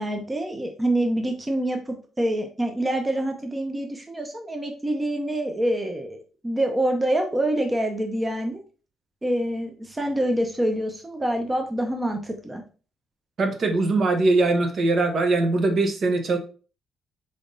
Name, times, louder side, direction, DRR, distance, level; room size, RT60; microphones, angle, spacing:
voice 1, 0.0-8.6 9.2-12.6, right 1 dB, 15° right, 4 dB, 0.6 m, -26 dB
voice 2, 13.4-16.4, right 2 dB, 50° right, 5 dB, 0.7 m, -21 dB
3.9 x 3.4 x 2.5 m, 0.37 s
cardioid pair, 90°, 0 cm